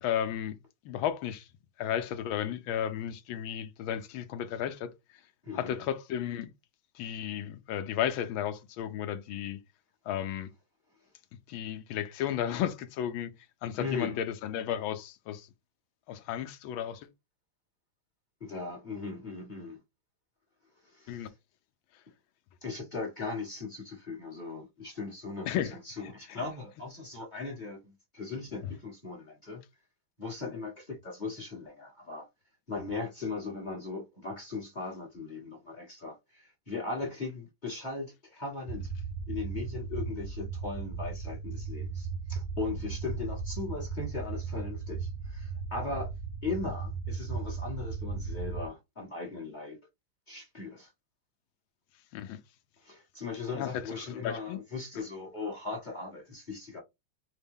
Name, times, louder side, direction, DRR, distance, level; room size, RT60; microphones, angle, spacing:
voice 1, 0.0-0.6 0.8-1.5 1.8-4.9 5.5-6.5 6.9-9.6 10.1-10.5 11.5-13.3 13.6-15.5 16.1-17.1 21.1-21.3 25.4-25.7 26.0-26.4 28.6-28.7 52.1-52.4 53.5-54.6, left 10 dB, 75° left, 1.3 m, -33 dB
voice 2, 5.4-5.8 13.8-14.1 18.4-19.8 20.8-21.3 22.6-25.5 25.8-29.6 30.2-32.3 32.7-38.9 39.3-46.1 46.4-49.8 50.3-50.9 52.8-56.8, left 4 dB, 30° left, 1.0 m, -38 dB
sound 1, 38.7-48.7, right 5 dB, 75° right, 1.3 m, -36 dB
4.1 x 2.1 x 3.5 m
omnidirectional pair, 2.3 m